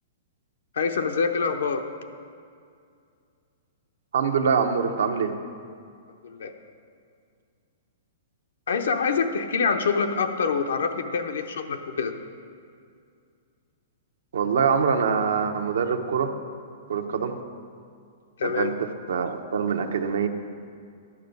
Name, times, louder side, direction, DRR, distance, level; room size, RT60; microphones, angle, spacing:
voice 1, 0.7-1.8 6.2-6.5 8.7-12.1 18.4-18.7, left 5 dB, 85° left, 6 dB, 0.8 m, -25 dB
voice 2, 4.1-5.3 14.3-16.3 16.9-17.4 18.4-20.3, right 6 dB, 80° right, 6 dB, 0.8 m, -24 dB
11.0 x 6.9 x 5.3 m, 2.3 s
hypercardioid pair, 145°, 0 cm